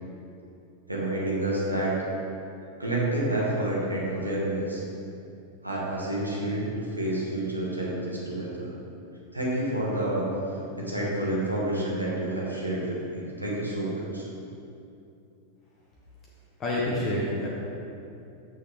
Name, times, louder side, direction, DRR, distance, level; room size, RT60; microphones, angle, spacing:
voice 1, 0.9-2.0 2.8-4.8 5.6-8.7 9.3-10.2 10.7-14.3, right 1 dB, 85° right, -5 dB, 1.2 m, -29 dB
voice 2, 16.6-17.5, left 1 dB, 30° left, -5 dB, 1.1 m, -27 dB
6.6 x 6.4 x 3.5 m, 2.7 s
figure-of-eight pair, 90°, 0 cm